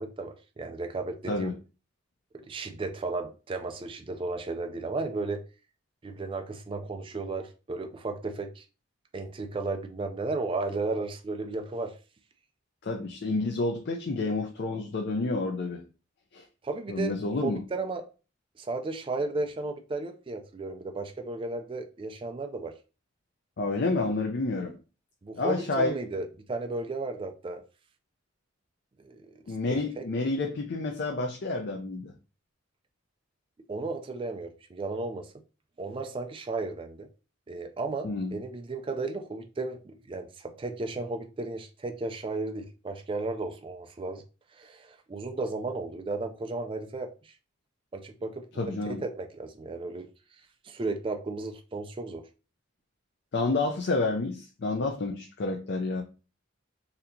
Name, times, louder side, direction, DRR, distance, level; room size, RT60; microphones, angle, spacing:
voice 1, 0.0-1.5 2.3-5.4 6.0-8.6 9.1-11.9 16.6-17.2 17.4-18.0 18.6-22.7 25.2-27.6 29.0-29.3 29.7-30.0 33.7-35.3 35.8-37.1 37.5-44.2 44.5-47.3 47.9-50.1 50.6-52.2, right 3 dB, 25° right, 0.3 m, -34 dB
voice 2, 12.8-15.8 16.3-16.4 16.9-17.6 23.6-24.8 25.4-25.9 29.5-32.1 38.0-38.3 48.6-49.0 53.3-56.0, left 3 dB, 55° left, 0.5 m, -29 dB
4.2 x 2.7 x 2.6 m
head